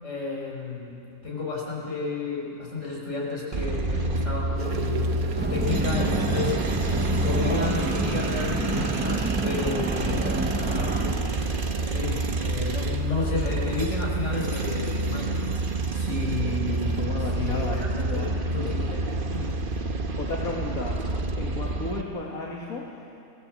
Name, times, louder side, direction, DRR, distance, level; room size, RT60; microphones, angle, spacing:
voice 1, 0.0-6.5 7.2-10.3 10.6-11.4 11.8-15.5 15.9-18.3 18.5-19.1 19.3-19.6, left 3 dB, 55° left, -3 dB, 5.6 m, -32 dB
sound 1, 3.5-22.0, right 2 dB, 40° right, 1.2 m, -28 dB
sound 2, 4.6-15.3, right 5 dB, 75° right, 1.6 m, -40 dB
sound 3, 5.4-11.1, right 1 dB, 10° right, 0.7 m, -29 dB
voice 2, 17.0-18.3 20.2-21.1 21.3-23.2, left 3 dB, 75° left, -2 dB, 2.5 m, -34 dB
25.0 x 18.0 x 7.7 m, 2.6 s
omnidirectional pair, 1.5 m